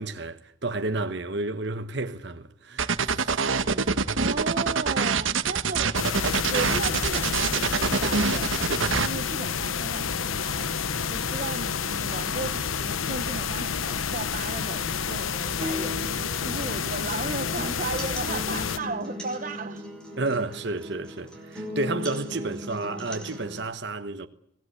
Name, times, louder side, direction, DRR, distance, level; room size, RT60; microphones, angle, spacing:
voice 1, 0.0-3.9 20.2-24.3, right 3 dB, 55° right, 1.2 m, -31 dB
sound 1, 2.8-9.1, right 5 dB, 80° right, 1.4 m, -25 dB
voice 2, 4.2-6.0 6.5-10.7 11.1-15.9 16.4-19.9, right 3 dB, 40° right, 0.9 m, -35 dB
sound 2, 6.0-18.8, left 6 dB, 90° left, 1.0 m, -29 dB
sound 3, 15.6-23.6, left 1 dB, 5° left, 5.6 m, -37 dB
25.0 x 19.0 x 8.2 m
head